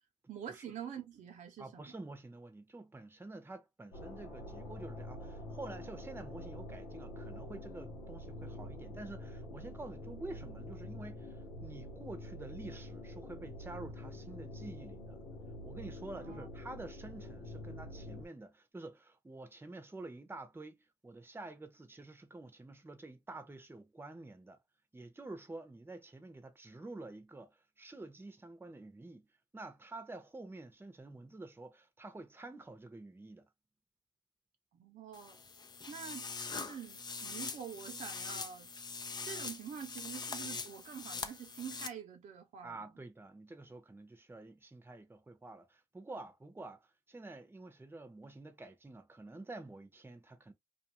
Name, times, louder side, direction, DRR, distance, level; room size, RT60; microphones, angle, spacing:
voice 1, 0.3-1.9 16.1-16.5 34.7-35.4 35.9-38.7 39.2-43.0, right 8 dB, 75° right, 0.8 m, -46 dB
voice 2, 1.6-15.2 15.6-24.6 24.9-29.3 29.5-33.5 42.6-50.5, right 2 dB, 15° right, 0.8 m, -49 dB
sound 1, 3.9-18.3, left 1 dB, 90° left, 0.8 m, -46 dB
sound 2, 35.1-41.9, left 4 dB, 35° left, 0.5 m, -43 dB
2.4 x 2.4 x 3.0 m
supercardioid pair, 55°, 13 cm